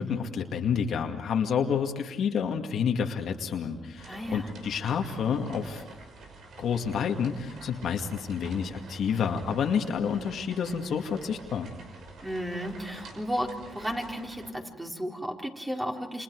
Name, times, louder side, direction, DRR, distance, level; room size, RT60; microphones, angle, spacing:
voice 1, 0.0-5.9 6.6-11.7, left 7 dB, 70° left, 3 dB, 2.2 m, -29 dB
sound 1, 4.0-14.5, right 3 dB, 70° right, 5.6 m, -48 dB
voice 2, 4.1-4.5 12.2-16.2, equal, 10° right, 0 dB, 4.3 m, -34 dB
29.0 x 27.5 x 4.8 m, 1.1 s
cardioid pair, 90°, 0 cm